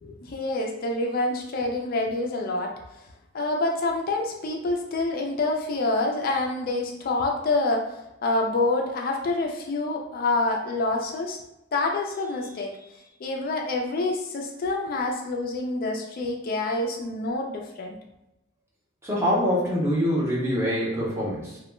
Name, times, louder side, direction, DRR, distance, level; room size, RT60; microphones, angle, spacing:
voice 1, 0.0-2.7 3.3-7.9 8.2-11.4 11.7-12.8 13.2-18.0, left 2 dB, 45° left, 1 dB, 0.3 m, -27 dB
voice 2, 19.0-21.6, equal, 15° right, -5 dB, 0.6 m, -24 dB
2.2 x 2.0 x 3.0 m, 0.91 s
head